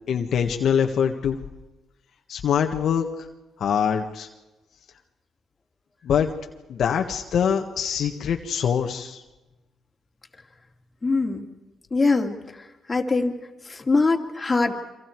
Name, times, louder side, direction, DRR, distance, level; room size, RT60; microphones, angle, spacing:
voice 1, 0.1-1.4 2.3-3.3 3.6-4.3 6.0-6.3 6.7-9.2, left 8 dB, 65° left, 3 dB, 1.6 m, -24 dB
voice 2, 11.0-11.5 11.9-13.4 13.7-14.7, left 3 dB, 25° left, 2 dB, 3.0 m, -23 dB
28.5 x 25.5 x 4.8 m, 1.1 s
cardioid pair, 90°, 0 cm